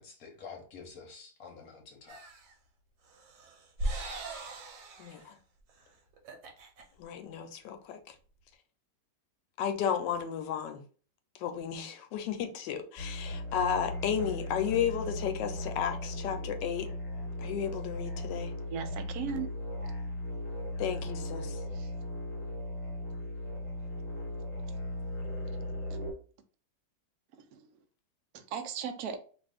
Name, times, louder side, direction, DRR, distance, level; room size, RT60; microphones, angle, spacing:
voice 1, 0.0-2.2, left 5 dB, 60° left, 1.1 m, -48 dB
sound 1, 2.1-2.5 3.1-5.3 5.7-5.8 6.1-6.8, right 1 dB, 85° right, 1.4 m, -39 dB
voice 2, 5.0-5.4 7.0-8.2 9.6-10.8 11.4-16.9 17.4-18.5 20.8-21.6, left 8 dB, 85° left, 1.2 m, -33 dB
sound 2, 13.0-26.1, left 1 dB, 25° left, 0.9 m, -37 dB
voice 3, 18.7-19.5 21.7-21.9 27.5-27.7 28.3-29.2, right 7 dB, 70° right, 0.9 m, -37 dB
2.9 x 2.5 x 3.3 m
omnidirectional pair, 1.9 m